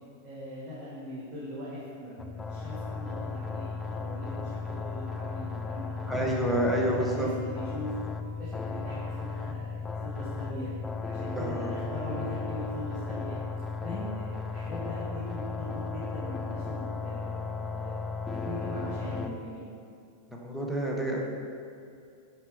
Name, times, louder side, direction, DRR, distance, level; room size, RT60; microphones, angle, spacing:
voice 1, 0.2-4.4 4.6-6.2 6.8-7.9 8.4-10.7 11.1-13.4 13.8-17.9 18.4-19.7, left 1 dB, 30° right, -9 dB, 1.5 m, -40 dB
sound 1, 2.2-19.3, left 4 dB, 15° left, 0.3 m, -35 dB
voice 2, 6.1-7.3 11.4-11.7 20.3-21.2, right 1 dB, 5° right, -2 dB, 0.9 m, -28 dB
6.8 x 4.6 x 3.3 m, 2.4 s
figure-of-eight pair, 90°, 0 cm